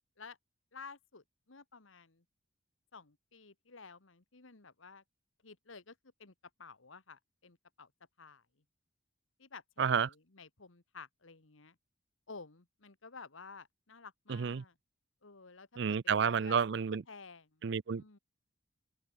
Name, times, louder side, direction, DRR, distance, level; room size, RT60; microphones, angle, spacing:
voice 1, 0.7-2.2 2.9-5.0 5.4-6.3 6.6-7.9 8.2-8.4 9.4-11.7 12.3-14.8 15.2-16.0 16.2-16.6 17.1-17.7 18.0-18.2, left 4 dB, 80° left, 1.7 m, -53 dB
voice 2, 9.8-10.1 14.3-14.6 15.8-17.0 17.6-18.0, right 6 dB, 60° right, 0.4 m, -30 dB
open air
head